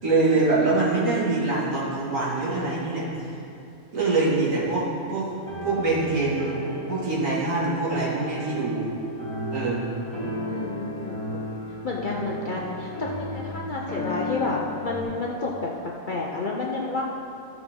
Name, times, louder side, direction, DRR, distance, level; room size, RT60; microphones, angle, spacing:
voice 1, 0.0-3.4 3.9-5.3 5.6-6.6 6.9-8.9 9.5-9.9, right 3 dB, 65° right, -7 dB, 2.5 m, -24 dB
sound 1, 5.3-15.0, left 1 dB, 20° right, 2.0 m, -34 dB
voice 2, 10.5-11.2 11.8-15.7 16.1-17.0, left 3 dB, 50° left, -2 dB, 0.6 m, -30 dB
14.0 x 6.0 x 3.7 m, 2.7 s
omnidirectional pair, 1.4 m